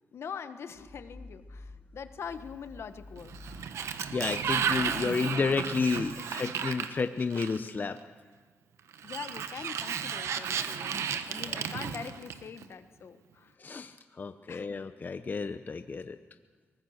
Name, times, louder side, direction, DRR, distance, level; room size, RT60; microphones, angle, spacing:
voice 1, 0.1-3.4 6.2-6.5 9.0-13.6 14.5-14.9, left 6 dB, 65° left, 10 dB, 1.2 m, -43 dB
sound 1, 0.7-6.1, left 2 dB, 30° right, 7.8 m, -51 dB
Sliding door, 3.2-7.8 8.9-12.6, right 7 dB, 85° right, 1.1 m, -33 dB
voice 2, 4.1-8.0 13.6-16.2, left 4 dB, 40° left, 9 dB, 0.8 m, -31 dB
23.0 x 19.5 x 6.5 m, 1.4 s
cardioid pair, 80°, 5 cm